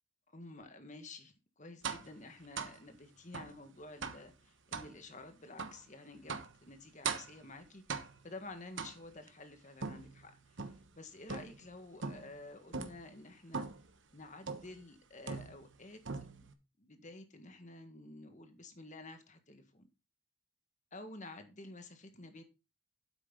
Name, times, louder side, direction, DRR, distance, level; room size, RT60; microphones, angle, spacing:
voice 1, 0.3-13.7 14.1-16.4 16.8-19.9 20.9-22.4, left 2 dB, 35° left, 7 dB, 1.7 m, -51 dB
sound 1, 1.8-2.1 2.6-2.8 3.3-3.6 4.0-4.3 4.7-4.9 5.6-5.8 6.3-6.6 7.0-7.4 7.9-8.3 8.8-9.3 9.8-10.9 11.3-11.7 12.0-12.4 12.7-13.0 13.5-13.9 14.5-14.8 15.3-15.8 16.1-16.5, right 5 dB, 55° right, 1.2 m, -41 dB
9.7 x 8.1 x 3.9 m, 0.27 s
head